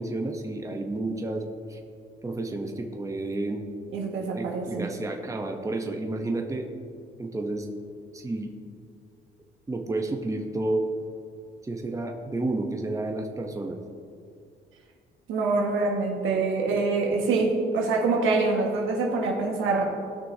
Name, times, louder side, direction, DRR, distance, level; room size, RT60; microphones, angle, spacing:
voice 1, 0.0-1.4 1.7-1.8 2.2-3.6 4.3-6.7 7.2-7.7 8.1-8.5 9.7-10.8 11.6-13.8, right 2 dB, 15° right, 3 dB, 0.9 m, -31 dB
voice 2, 3.9-4.9 15.3-19.8, right 3 dB, 85° right, 0 dB, 1.7 m, -25 dB
17.5 x 6.1 x 2.8 m, 2.3 s
cardioid pair, 90°, 20 cm